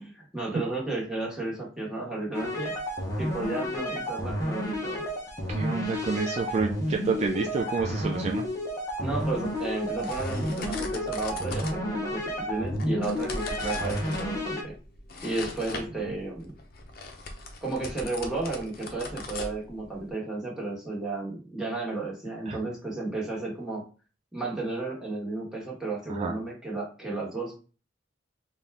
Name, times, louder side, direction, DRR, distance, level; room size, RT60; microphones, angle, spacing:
voice 1, 0.0-2.8 3.2-5.0 9.0-14.7 15.2-16.5 17.6-23.8 24.3-27.7, right 2 dB, 5° right, -4 dB, 1.3 m, -33 dB
sound 1, 2.3-14.6, equal, 20° left, 0.8 m, -31 dB
voice 2, 5.5-8.4 22.5-22.6 26.1-26.3, right 4 dB, 35° right, 2 dB, 0.3 m, -29 dB
sound 2, 8.9-20.1, left 2 dB, 55° left, 0.7 m, -41 dB
4.0 x 2.4 x 3.4 m, 0.36 s
head